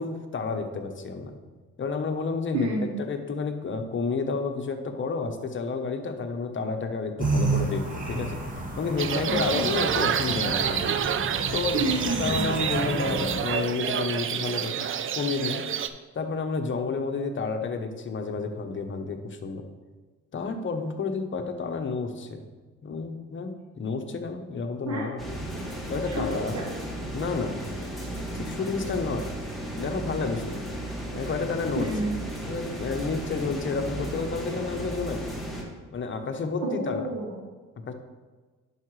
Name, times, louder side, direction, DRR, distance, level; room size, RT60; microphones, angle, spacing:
voice 1, 0.0-1.4 1.8-8.4 8.8-11.0 11.5-11.8 12.2-14.9 15.1-15.6 16.1-19.6 20.3-22.4 22.8-25.5 25.9-26.6 27.1-27.6 28.3-29.3 29.8-30.6 31.1-31.9 32.4-35.4 35.9-37.1 37.9-38.0, left 4 dB, 40° left, 6 dB, 0.9 m, -30 dB
voice 2, 2.5-3.0 9.1-9.7 11.7-12.6 24.8-25.1 26.0-26.7 31.8-32.2 36.6-37.4, right 2 dB, 65° right, -2 dB, 1.1 m, -30 dB
sound 1, 7.2-13.4, right 2 dB, 25° right, 1.7 m, -31 dB
sound 2, 9.0-15.9, right 8 dB, 45° right, 0.5 m, -28 dB
sound 3, 25.2-35.6, right 1 dB, ahead, 1.8 m, -35 dB
11.0 x 4.8 x 3.2 m, 1.4 s
cardioid pair, 90°, 30 cm